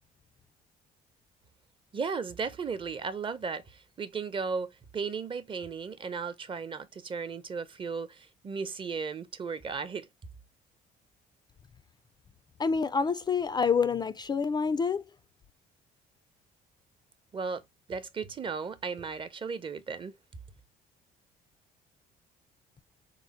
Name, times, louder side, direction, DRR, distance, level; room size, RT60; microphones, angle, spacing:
voice 1, 1.9-10.1 17.3-17.6 17.9-20.1, right 5 dB, 30° right, 0.7 m, -35 dB
voice 2, 12.6-15.0, left 5 dB, 25° left, 0.3 m, -27 dB
4.7 x 2.0 x 4.1 m
cardioid pair, 110°, 17 cm